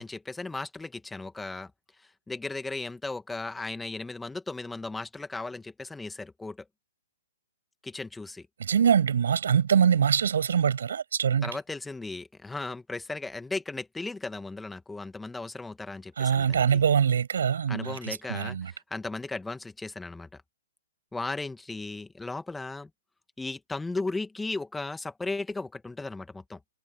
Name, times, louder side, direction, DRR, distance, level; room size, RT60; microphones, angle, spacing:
voice 1, 0.0-1.7 2.3-6.6 7.8-8.5 11.4-16.8 17.7-20.4 21.1-22.9 23.4-26.6, left 3 dB, 5° left, 2.0 m, -36 dB
voice 2, 8.6-11.5 16.2-18.7, right 7 dB, 65° right, 6.3 m, -24 dB
figure-of-eight pair, 125°, 0 cm